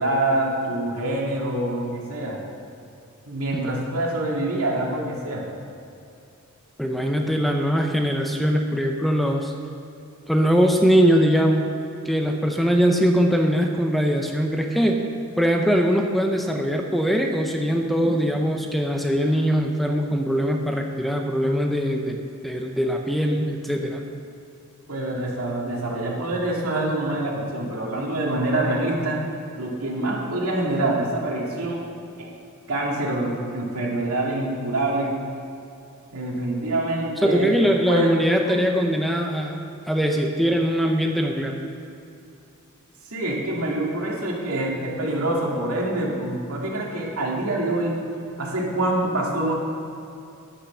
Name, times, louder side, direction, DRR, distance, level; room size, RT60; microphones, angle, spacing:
voice 1, 0.0-2.4 3.3-5.5 18.0-18.1 24.9-29.2 29.6-31.8 32.2-32.3 32.7-35.1 36.1-37.5 37.9-38.1 38.5-38.6 43.1-48.0 48.4-49.5, right 1 dB, 75° right, -2 dB, 2.4 m, -25 dB
voice 2, 6.8-9.5 10.3-11.7 12.0-15.1 15.4-22.2 22.4-24.0 37.2-39.6 39.9-41.6, equal, ahead, 2 dB, 0.7 m, -21 dB
9.9 x 8.6 x 6.2 m, 2.8 s
head